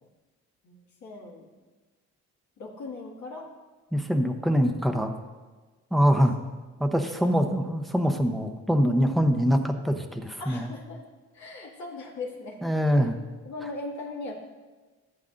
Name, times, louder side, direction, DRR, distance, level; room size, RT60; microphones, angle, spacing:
voice 1, 0.6-1.5 2.6-3.5 6.9-7.3 10.4-11.0 11.3-12.6 12.9-13.1 13.4-14.3, left 3 dB, 70° left, -3 dB, 2.1 m, -39 dB
voice 2, 3.9-5.1 5.9-6.3 6.8-10.7 12.6-13.2, equal, ahead, 4 dB, 0.8 m, -24 dB
15.0 x 7.4 x 2.6 m, 1.3 s
cardioid pair, 90°, 30 cm